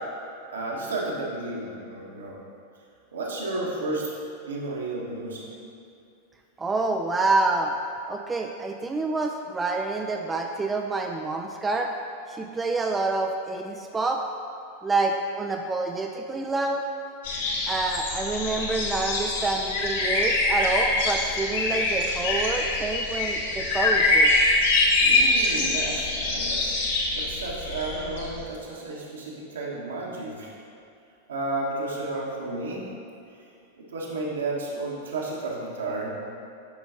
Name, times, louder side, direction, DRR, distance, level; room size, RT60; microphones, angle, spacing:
voice 1, 0.5-2.4 3.1-4.1 4.5-5.5 25.0-26.7 27.1-30.5 31.3-32.8 33.8-36.1, right 2 dB, 65° right, -4 dB, 1.4 m, -32 dB
voice 2, 6.6-7.7 8.1-11.9 12.3-14.2 14.8-16.8 17.7-24.3, right 3 dB, 15° right, 3 dB, 0.4 m, -27 dB
sound 1, 17.2-28.4, left 2 dB, 60° left, 1.2 m, -24 dB
10.5 x 5.7 x 2.7 m, 2.6 s
figure-of-eight pair, 90°, 0 cm